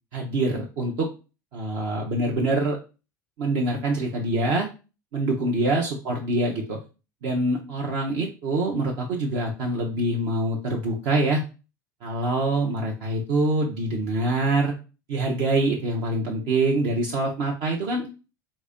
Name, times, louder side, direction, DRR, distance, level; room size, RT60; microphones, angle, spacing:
voice 1, 0.1-1.1 1.5-2.8 3.4-4.7 5.1-6.8 7.2-11.4 12.0-14.7 15.1-18.1, right 2 dB, 55° right, 0 dB, 0.8 m, -25 dB
3.1 x 2.7 x 3.7 m, 0.31 s
figure-of-eight pair, 70°, 10 cm